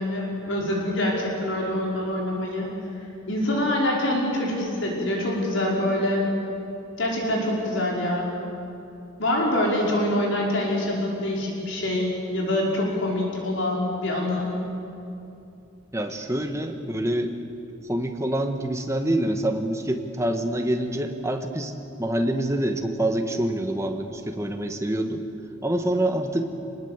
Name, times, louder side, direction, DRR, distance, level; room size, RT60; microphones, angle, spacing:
voice 1, 0.0-2.7 3.3-6.3 7.0-8.3 9.2-14.5, left 1 dB, 65° left, -2 dB, 5.1 m, -25 dB
voice 2, 15.9-17.3 17.8-21.7 22.0-25.2 25.6-26.5, right 1 dB, 15° right, 5 dB, 1.5 m, -26 dB
27.0 x 20.5 x 8.2 m, 2.8 s
head